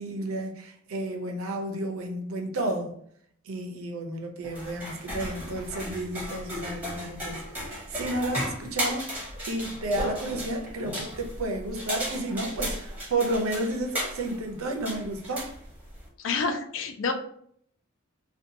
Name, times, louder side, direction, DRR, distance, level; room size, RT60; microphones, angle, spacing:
voice 1, 0.0-3.0 3.5-9.0 9.4-15.5, right 1 dB, 80° right, 0.5 m, -31 dB
sound 1, 4.4-16.1, equal, 10° right, 0.8 m, -35 dB
voice 2, 16.2-17.1, left 4 dB, 60° left, 0.4 m, -28 dB
2.7 x 2.2 x 2.6 m
head